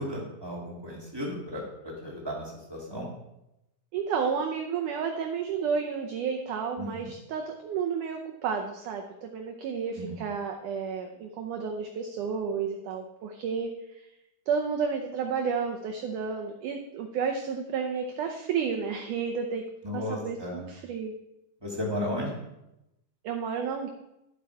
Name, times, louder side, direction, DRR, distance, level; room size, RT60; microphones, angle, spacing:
voice 1, 0.0-3.1 6.8-7.1 10.0-10.2 19.8-20.6 21.6-22.4, left 1 dB, 10° right, -4 dB, 1.1 m, -34 dB
voice 2, 3.9-13.7 14.5-19.6 19.9-21.1 23.2-23.9, right 6 dB, 90° right, 3 dB, 1.7 m, -31 dB
12.5 x 7.8 x 4.7 m, 0.88 s
omnidirectional pair, 4.8 m